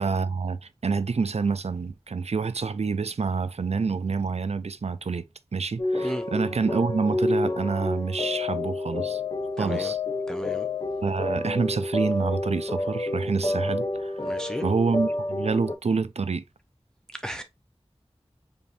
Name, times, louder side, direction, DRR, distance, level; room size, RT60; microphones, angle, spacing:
voice 1, 0.0-5.2 5.5-9.2 9.6-10.0 11.0-14.2 14.6-16.4, right 5 dB, 75° right, 0.4 m, -27 dB
sound 1, 5.8-15.7, left 2 dB, 35° left, 0.7 m, -29 dB
voice 2, 9.6-9.9 10.3-10.7 14.2-14.7 17.2-17.4, equal, 5° left, 0.5 m, -34 dB
5.1 x 2.6 x 2.7 m
wide cardioid pair, 40°, 11 cm